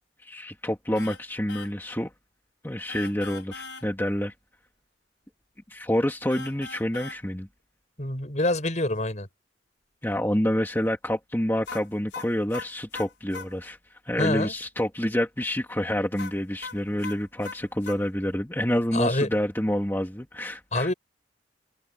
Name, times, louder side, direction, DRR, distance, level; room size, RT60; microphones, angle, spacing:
voice 1, 0.2-2.1 2.6-4.3 5.7-7.5 10.0-20.9, equal, 10° left, 2.0 m, -28 dB
sound 1, 0.9-1.2 1.5-1.7 2.9-3.8 6.3-7.2 11.7-13.5 16.2-18.0, left 4 dB, 85° left, 4.7 m, -40 dB
voice 2, 8.0-9.3 14.2-14.5 18.9-19.3 20.7-20.9, left 2 dB, 40° left, 5.3 m, -26 dB
head